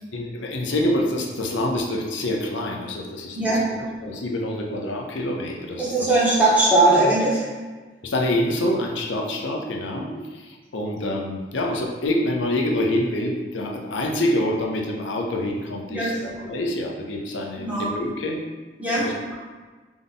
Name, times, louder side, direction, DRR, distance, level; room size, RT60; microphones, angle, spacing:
voice 1, 0.1-3.7 4.0-6.4 8.0-18.4 19.0-19.1, left 1 dB, 90° left, 0 dB, 0.7 m, -26 dB
voice 2, 5.8-7.5 10.1-10.2 15.9-16.1 17.6-17.9 18.8-19.0, right 2 dB, 10° right, -8 dB, 1.3 m, -19 dB
3.7 x 3.4 x 3.9 m, 1.3 s
head